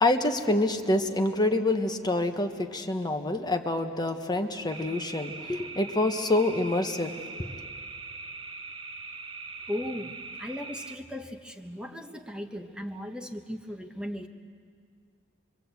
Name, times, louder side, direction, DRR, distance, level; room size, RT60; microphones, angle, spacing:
voice 1, 0.0-7.1 7.4-7.5, left 2 dB, 20° left, 5 dB, 1.1 m, -26 dB
sound 1, 4.7-11.0, right 4 dB, 25° right, 1.3 m, -41 dB
voice 2, 9.7-10.1 10.4-14.3, left 1 dB, 5° right, 5 dB, 1.0 m, -37 dB
27.0 x 23.0 x 8.2 m, 2.2 s
head